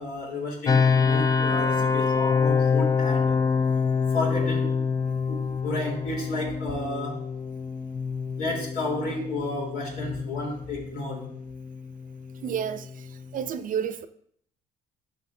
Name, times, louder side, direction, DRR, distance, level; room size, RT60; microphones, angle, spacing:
voice 1, 0.0-3.4 4.1-4.7 5.3-7.2 8.4-11.3, left 2 dB, 80° left, -2 dB, 3.6 m, -32 dB
sound 1, 0.7-13.5, left 5 dB, 20° left, 0.3 m, -26 dB
voice 2, 12.4-13.1 13.3-14.1, right 8 dB, 50° right, 12 dB, 0.6 m, -30 dB
12.0 x 6.0 x 2.7 m, 0.65 s
cardioid pair, 110°, 17 cm